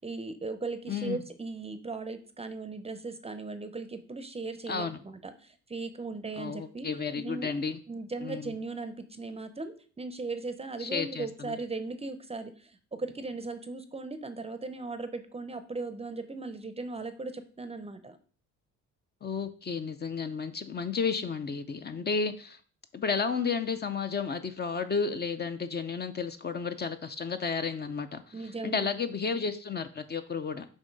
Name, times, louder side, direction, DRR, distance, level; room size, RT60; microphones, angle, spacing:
voice 1, 0.0-6.9 7.1-7.5 7.9-18.2 28.3-29.0, right 3 dB, 20° right, 10 dB, 0.6 m, -38 dB
voice 2, 0.9-1.2 4.7-5.0 6.4-7.8 8.2-8.5 10.8-11.6 19.2-22.6 22.9-28.2 28.6-30.7, left 5 dB, 35° left, 9 dB, 0.6 m, -32 dB
7.1 x 2.7 x 5.3 m, 0.41 s
cardioid pair, 90°, 30 cm